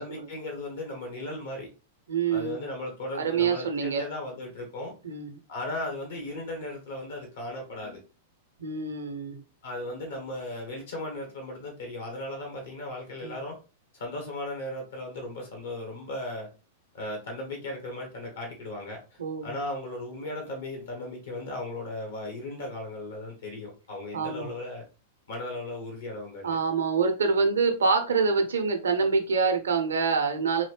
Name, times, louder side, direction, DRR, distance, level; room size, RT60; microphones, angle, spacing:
voice 1, 0.0-1.7 2.3-4.9 5.5-8.0 9.6-13.6 13.9-16.5 16.9-24.8 25.3-26.6, left 1 dB, 70° left, 2 dB, 1.8 m, -36 dB
voice 2, 2.1-2.6 3.2-4.0 5.0-5.4 8.6-9.4 13.2-13.4 19.2-19.5 24.1-24.5 26.4-30.6, right 5 dB, 75° right, 5 dB, 0.8 m, -26 dB
4.0 x 2.7 x 3.3 m, 0.32 s
figure-of-eight pair, 100°, 0 cm